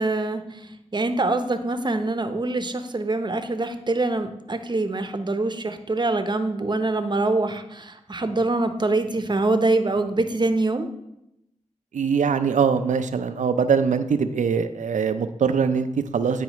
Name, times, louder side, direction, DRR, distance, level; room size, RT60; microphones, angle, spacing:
voice 1, 0.0-10.9, right 2 dB, 35° right, 8 dB, 0.7 m, -24 dB
voice 2, 11.9-16.4, right 6 dB, 80° right, 10 dB, 0.5 m, -22 dB
9.2 x 4.7 x 3.0 m, 0.86 s
cardioid pair, 45°, 13 cm